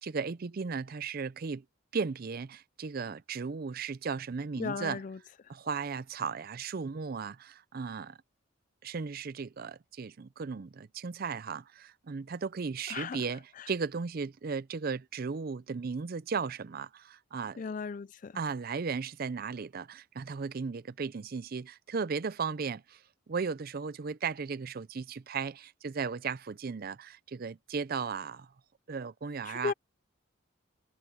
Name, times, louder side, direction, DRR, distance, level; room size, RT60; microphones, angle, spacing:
voice 1, 0.0-1.6 1.9-5.0 5.5-8.2 8.8-17.6 18.3-28.5 28.9-29.7, right 5 dB, 45° right, 0.4 m, -36 dB
voice 2, 4.6-5.2 12.9-13.2 13.6-13.7 17.6-18.4 29.5-29.7, left 5 dB, 40° left, 0.3 m, -36 dB
head